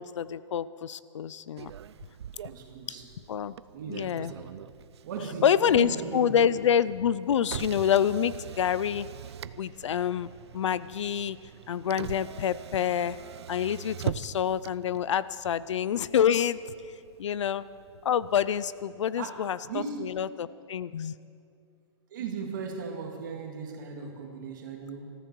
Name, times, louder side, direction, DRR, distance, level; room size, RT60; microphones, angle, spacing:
voice 1, 0.0-1.7 2.9-3.0 3.3-3.5 3.9-4.3 5.4-9.1 9.6-11.4 11.7-13.2 13.5-16.6 17.2-17.6 18.0-21.1, left 9 dB, 80° left, 18 dB, 0.5 m, -27 dB
Motor vehicle (road), 1.6-18.7, right 9 dB, 65° right, 0.5 m, -43 dB
voice 2, 2.4-3.1 3.7-4.5 5.0-6.4 19.2-20.2 22.1-25.1, right 5 dB, 40° right, 2 dB, 2.2 m, -37 dB
20.0 x 14.0 x 4.7 m, 2.4 s
hypercardioid pair, 180°, 15 cm